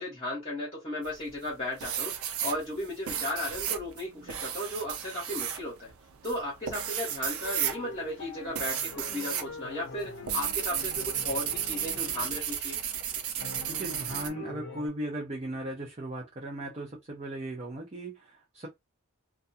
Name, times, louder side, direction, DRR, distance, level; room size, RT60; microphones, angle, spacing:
voice 1, 0.0-5.9 6.2-12.8, left 1 dB, 30° left, 1.1 m, -35 dB
sound 1, 1.0-1.5 1.8-9.5 9.8-14.3, right 9 dB, 70° right, 0.5 m, -33 dB
sound 2, 7.4-12.6 13.4-14.9, left 3 dB, 55° left, 0.6 m, -44 dB
voice 2, 13.7-18.7, right 1 dB, 30° right, 0.6 m, -37 dB
2.3 x 2.3 x 2.6 m
head